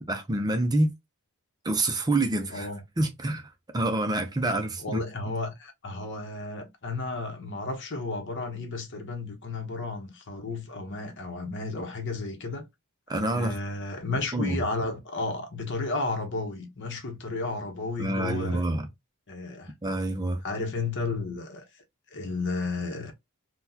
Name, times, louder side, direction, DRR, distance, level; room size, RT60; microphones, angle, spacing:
voice 1, 0.1-0.9 1.6-2.7 3.0-5.0 13.1-13.6 14.3-14.6 18.0-18.9 19.8-20.4, right 2 dB, 20° right, 0.5 m, -27 dB
voice 2, 2.5-2.8 4.8-12.6 13.3-18.7 19.3-19.7 20.4-21.8 22.1-23.1, left 3 dB, 55° left, 0.9 m, -33 dB
3.8 x 2.3 x 2.7 m
head